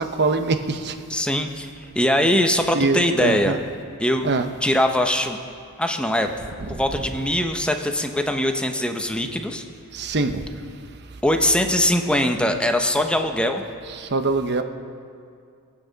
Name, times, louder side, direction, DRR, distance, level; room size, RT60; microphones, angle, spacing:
voice 1, 0.0-0.9 2.7-3.6 4.2-4.5 9.9-10.4 14.0-14.6, right 3 dB, 50° right, 8 dB, 0.8 m, -23 dB
voice 2, 1.1-1.7 2.0-3.6 4.0-4.3 4.6-5.4 5.8-6.3 6.7-9.6 11.2-13.6, left 1 dB, 5° left, 5 dB, 0.8 m, -21 dB
24.0 x 8.6 x 4.0 m, 2.3 s
head